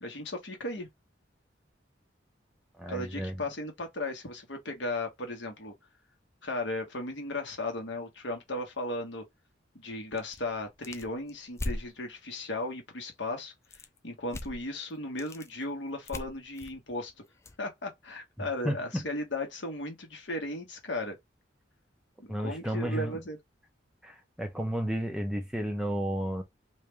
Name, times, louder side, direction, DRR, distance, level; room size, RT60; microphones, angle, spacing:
voice 1, 0.0-0.9 2.9-5.7 6.4-9.2 9.7-17.1 17.6-21.2 22.2-23.4, left 2 dB, 80° left, 1.4 m, -36 dB
voice 2, 2.8-3.3 18.4-18.8 22.3-23.2 24.0-26.4, equal, 5° right, 0.8 m, -32 dB
sound 1, 10.1-11.9 13.6-14.0 14.3-14.6 15.0-15.5 16.1-17.6, left 1 dB, 15° left, 0.4 m, -39 dB
3.3 x 2.7 x 3.4 m
head